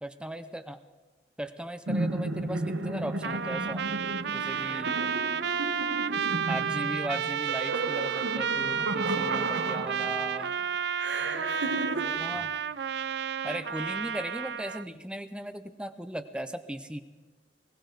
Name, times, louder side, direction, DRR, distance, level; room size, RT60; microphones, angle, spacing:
voice 1, 0.0-0.8 1.4-3.8 4.3-5.0 6.5-10.5 12.2-12.5 13.4-17.0, right 1 dB, 5° right, 10 dB, 0.6 m, -37 dB
sound 1, 1.9-10.4 11.0-12.1, right 2 dB, 80° right, 1.2 m, -33 dB
Trumpet, 3.2-14.8, right 7 dB, 65° right, 0.5 m, -31 dB
voice 2, 9.1-9.4 11.1-12.5, equal, 90° left, -3 dB, 6.1 m, -46 dB
21.0 x 17.5 x 3.9 m, 1.3 s
head